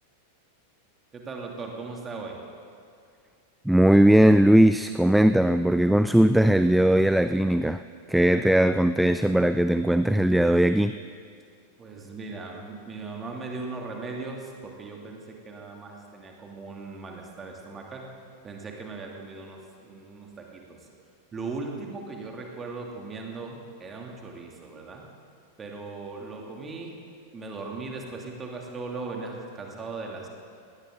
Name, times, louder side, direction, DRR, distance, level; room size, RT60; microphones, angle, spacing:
voice 1, 1.1-2.4 11.8-18.1 18.4-20.9 21.3-25.1 25.6-27.0 27.3-30.3, right 3 dB, 20° right, 0 dB, 2.5 m, -38 dB
voice 2, 3.7-7.8 8.1-11.0, right 1 dB, ahead, 12 dB, 0.3 m, -19 dB
19.0 x 18.5 x 3.8 m, 2.3 s
figure-of-eight pair, 90°, 0 cm